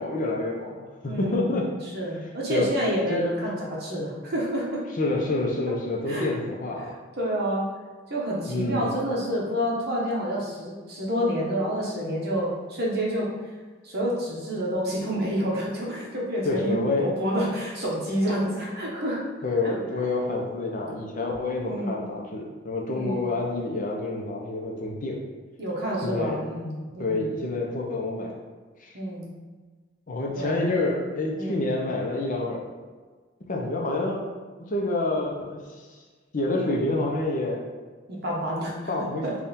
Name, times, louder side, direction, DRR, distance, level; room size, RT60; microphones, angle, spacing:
voice 1, 0.0-1.7 2.5-2.7 3.1-3.2 5.0-7.0 8.5-8.9 16.4-17.1 19.4-25.2 26.0-26.4 27.0-28.3 28.8-29.0 30.1-32.6 33.4-34.3 34.7-36.0 36.3-37.6 38.9-39.2, left 2 dB, 40° left, -1 dB, 0.5 m, -28 dB
voice 2, 1.0-1.5 1.9-4.8 6.1-6.3 6.8-6.9 7.2-7.7 8.1-13.3 13.8-19.2 19.6-19.8 21.6-22.0 22.9-23.3 25.6-27.3 28.9-29.3 30.4-30.6 31.3-31.7 38.1-39.4, equal, 50° right, -3 dB, 0.9 m, -28 dB
3.5 x 2.3 x 4.1 m, 1.4 s
head